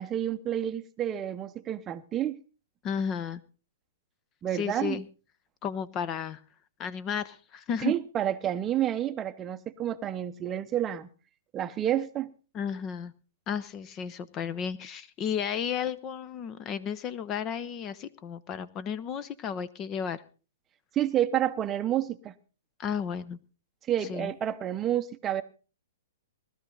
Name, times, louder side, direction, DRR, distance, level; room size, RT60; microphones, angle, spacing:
voice 1, 0.0-2.4 4.4-5.0 7.8-11.1 11.5-12.3 20.9-22.3 23.9-25.4, right 11 dB, 20° right, 0.8 m, -29 dB
voice 2, 2.8-3.4 4.5-5.0 5.6-6.4 6.8-7.9 12.5-13.1 13.5-20.2 22.8-23.4 24.1-24.3, left 7 dB, 30° left, 0.9 m, -33 dB
19.5 x 13.0 x 3.9 m
hypercardioid pair, 130°, 0 cm